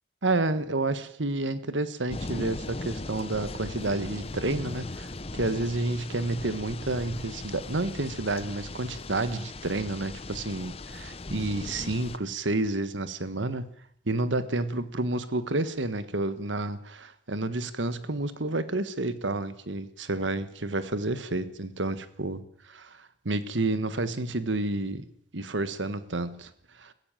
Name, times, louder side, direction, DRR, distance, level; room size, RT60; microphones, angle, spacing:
voice 1, 0.2-13.7 14.1-26.5 26.8-26.9, right 2 dB, 80° right, 1.5 m, -30 dB
sound 1, 2.1-12.2, left 2 dB, 30° left, 0.9 m, -38 dB
21.5 x 15.5 x 9.1 m
head